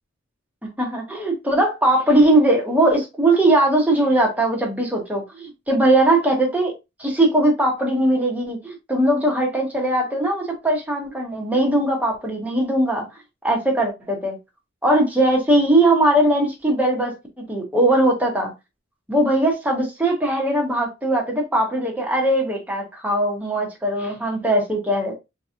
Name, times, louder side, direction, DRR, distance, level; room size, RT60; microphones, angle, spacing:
voice 1, 0.8-6.7 7.0-13.1 13.4-14.4 14.8-18.5 19.1-25.1, right 1 dB, 10° right, 1.0 m, -20 dB
3.9 x 2.9 x 2.4 m
head